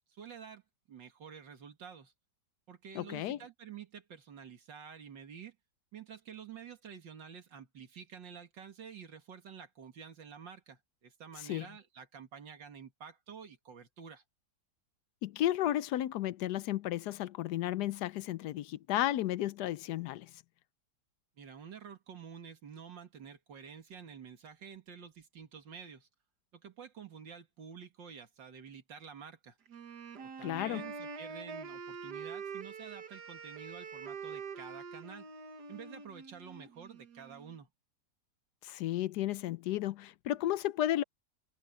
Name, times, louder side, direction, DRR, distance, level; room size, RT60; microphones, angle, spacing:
voice 1, 0.1-0.6 0.9-2.1 2.7-5.6 5.9-14.2 21.4-26.1 26.5-29.6 30.2-35.3 35.7-37.7, right 7 dB, 85° right, 2.6 m, -49 dB
voice 2, 2.9-3.4 11.5-11.7 15.2-20.3 30.4-30.8 38.6-41.0, left 13 dB, 70° left, 1.1 m, -33 dB
Wind instrument woodwind instrument, 29.7-37.5, right 5 dB, 65° right, 2.1 m, -45 dB
omnidirectional pair, 1.9 m